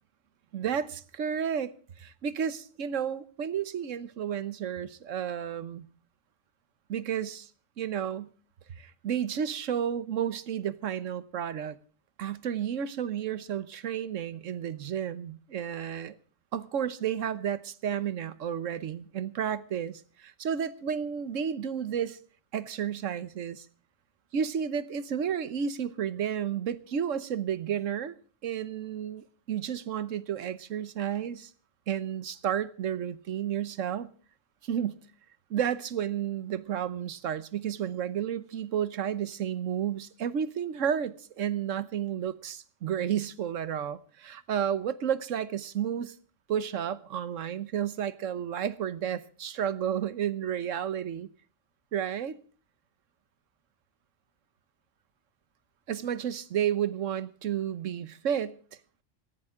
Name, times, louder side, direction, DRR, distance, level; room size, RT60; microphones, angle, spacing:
voice 1, 0.5-5.9 6.9-7.5 7.8-8.3 8.8-11.8 12.2-16.2 16.5-22.2 22.5-23.7 24.3-28.1 28.4-31.5 31.9-34.1 34.6-35.0 35.5-46.1 46.5-51.3 51.9-52.4 55.9-58.6, right 9 dB, 85° right, 1.3 m, -32 dB
19.0 x 15.0 x 3.7 m
omnidirectional pair, 1.3 m